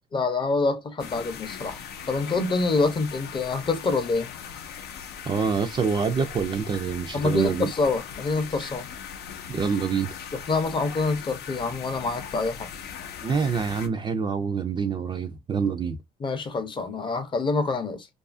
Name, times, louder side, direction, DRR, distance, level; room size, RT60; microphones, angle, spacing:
voice 1, 0.1-1.8 2.1-4.3 7.1-8.9 10.3-12.7 16.2-18.1, left 3 dB, 30° left, 0.6 m, -26 dB
sound 1, 1.0-13.9, left 7 dB, 85° left, 0.5 m, -39 dB
voice 2, 5.3-7.7 8.6-8.7 9.5-10.1 13.2-16.0, right 6 dB, 30° right, 0.3 m, -26 dB
2.7 x 2.4 x 2.4 m
cardioid pair, 110°, 17 cm